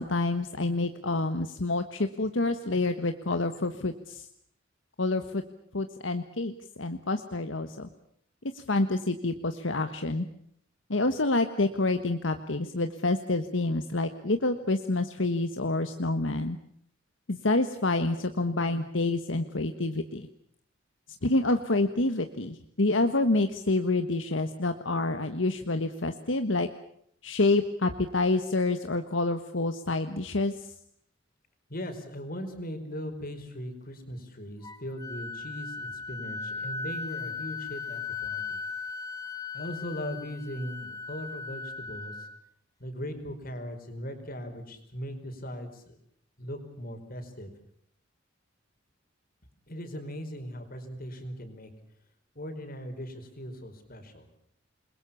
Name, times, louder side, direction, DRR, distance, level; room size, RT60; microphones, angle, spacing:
voice 1, 0.0-4.3 5.0-5.4 5.7-7.9 8.5-10.3 10.9-16.6 17.3-20.3 21.2-26.7 27.2-30.7, left 2 dB, 75° left, 8 dB, 1.4 m, -28 dB
voice 2, 31.7-38.6 39.5-42.3 42.8-46.0 46.4-47.5 49.7-51.7 52.3-54.3, equal, 50° left, 7 dB, 4.9 m, -39 dB
Wind instrument woodwind instrument, 34.6-42.4, left 4 dB, 20° left, 2.9 m, -37 dB
28.5 x 22.0 x 7.1 m, 0.68 s
head